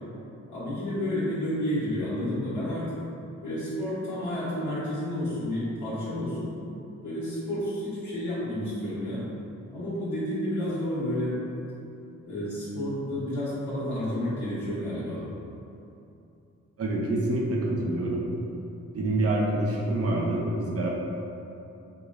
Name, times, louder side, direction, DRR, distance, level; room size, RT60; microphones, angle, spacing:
voice 1, 0.5-3.0 3.4-6.5 7.0-9.2 9.7-11.4 12.2-15.3, left 1 dB, 75° left, -11 dB, 1.1 m, -30 dB
voice 2, 16.8-18.2 18.9-20.9, right 1 dB, 50° right, -2 dB, 0.6 m, -26 dB
4.8 x 2.2 x 2.5 m, 2.8 s
cardioid pair, 85°, 30 cm